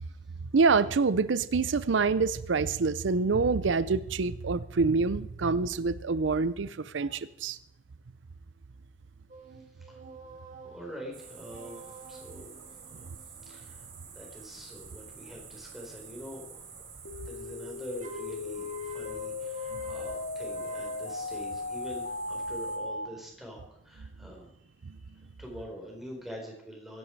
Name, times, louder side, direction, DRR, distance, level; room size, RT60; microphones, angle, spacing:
voice 1, 0.5-7.6 24.9-25.0, right 4 dB, 90° right, 16 dB, 0.6 m, -26 dB
sound 1, 9.3-14.7 18.0-21.9, right 4 dB, 40° right, 2.4 m, -50 dB
voice 2, 10.6-13.1 13.5-16.6 17.3-23.6 23.8-27.0, equal, ahead, -1 dB, 4.6 m, -45 dB
sound 2, 11.1-22.8, right 6 dB, 65° right, 4.9 m, -49 dB
sound 3, 17.0-23.1, left 3 dB, 80° left, 2.9 m, -37 dB
23.5 x 11.0 x 4.7 m, 0.75 s
head